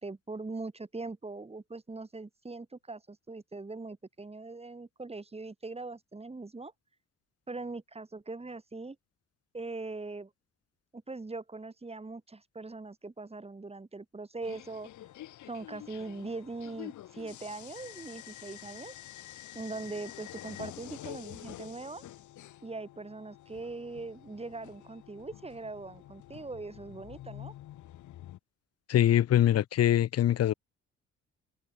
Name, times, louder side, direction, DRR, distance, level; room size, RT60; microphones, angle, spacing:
voice 1, 0.0-6.7 7.5-9.0 9.5-10.3 10.9-14.9 15.5-19.0 19.5-22.0 22.6-27.5, right 3 dB, 20° right, 5.5 m, -41 dB
sound 1, 14.4-28.4, left 13 dB, 75° left, 1.8 m, -48 dB
voice 2, 28.9-30.5, left 11 dB, 55° left, 0.7 m, -23 dB
cardioid pair, 90°, 30 cm